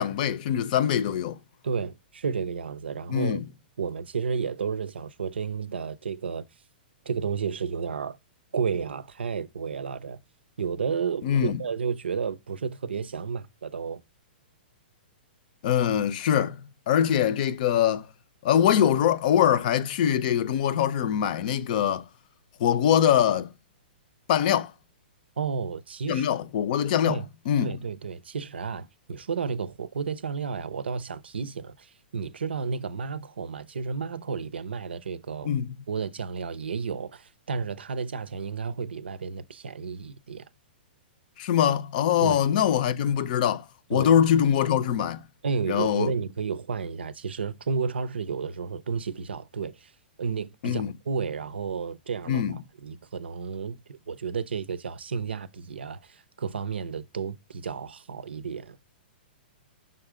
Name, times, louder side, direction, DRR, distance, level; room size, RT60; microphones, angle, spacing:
voice 1, 0.0-1.4 3.1-3.4 11.2-11.6 15.6-16.6 16.9-18.1 18.4-22.0 22.6-23.5 24.3-24.7 26.1-27.8 35.4-35.7 41.4-43.6 43.9-45.2 45.7-46.1 50.6-50.9 52.3-52.6, left 9 dB, 50° left, 0.6 m, -23 dB
voice 2, 1.6-3.4 3.8-6.5 7.1-8.2 8.5-10.2 10.6-14.0 25.4-26.3 27.0-27.3 27.6-35.5 35.9-40.5 42.2-42.4 43.9-44.1 45.4-49.9 50.2-58.8, right 6 dB, 90° right, 0.6 m, -32 dB
5.9 x 3.8 x 4.9 m
hypercardioid pair, 130°, 6 cm